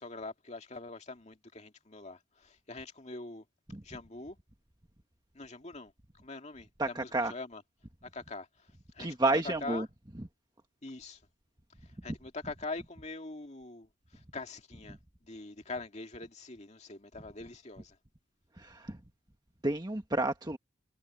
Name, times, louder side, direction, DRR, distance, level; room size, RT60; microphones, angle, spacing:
voice 1, 0.0-3.4 3.8-4.4 5.3-5.9 6.2-7.6 8.1-8.5 8.9-9.1 9.4-9.9 10.8-11.2 12.0-15.0 15.2-18.0, left 3 dB, 35° left, 2.3 m, -43 dB
voice 2, 6.8-7.3 9.0-9.9 10.1-10.3 12.1-12.2 14.9-15.0 18.6-19.0 19.6-20.6, right 2 dB, 20° right, 1.4 m, -31 dB
head